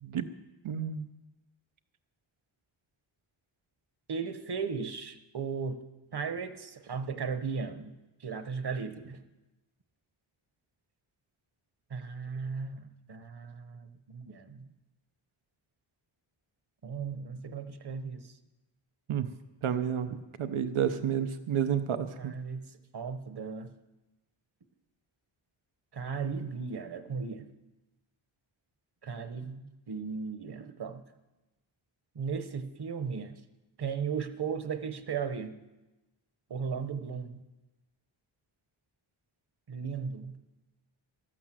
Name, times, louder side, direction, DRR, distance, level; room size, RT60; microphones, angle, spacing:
voice 1, 0.6-1.1 19.1-19.3 19.6-22.3, right 8 dB, 90° right, 9 dB, 0.9 m, -30 dB
voice 2, 4.1-5.8 6.1-9.2 11.9-14.7 16.8-18.4 22.2-23.7 25.9-27.5 29.0-31.0 32.1-33.4 33.8-35.6 36.5-37.4 39.7-40.4, right 5 dB, 55° right, 10 dB, 1.2 m, -36 dB
13.0 x 12.5 x 7.6 m, 1.1 s
wide cardioid pair, 100°, 48 cm